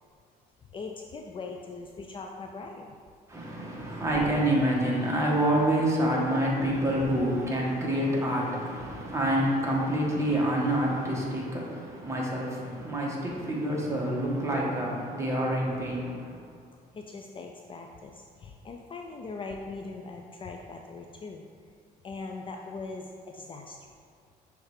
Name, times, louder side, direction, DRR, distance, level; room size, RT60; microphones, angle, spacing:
voice 1, 0.7-2.9 16.9-21.5 22.0-23.8, left 3 dB, 30° left, 2 dB, 0.4 m, -40 dB
voice 2, 3.3-11.7 12.0-16.1, right 1 dB, 15° right, -4 dB, 1.3 m, -27 dB
6.4 x 3.3 x 4.7 m, 2.3 s
cardioid pair, 110°, 17 cm